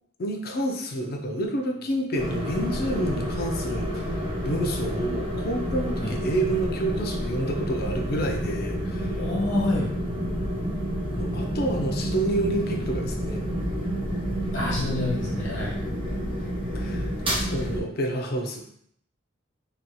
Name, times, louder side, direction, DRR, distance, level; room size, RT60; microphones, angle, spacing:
voice 1, 0.2-9.2 11.1-13.4 16.7-18.6, right 1 dB, 50° left, 3 dB, 0.4 m, -29 dB
sound 1, 2.2-17.8, equal, 25° right, 0.5 m, -29 dB
voice 2, 9.2-9.9 14.5-15.8, left 1 dB, 70° left, -5 dB, 1.2 m, -27 dB
2.8 x 2.7 x 2.2 m, 0.68 s
head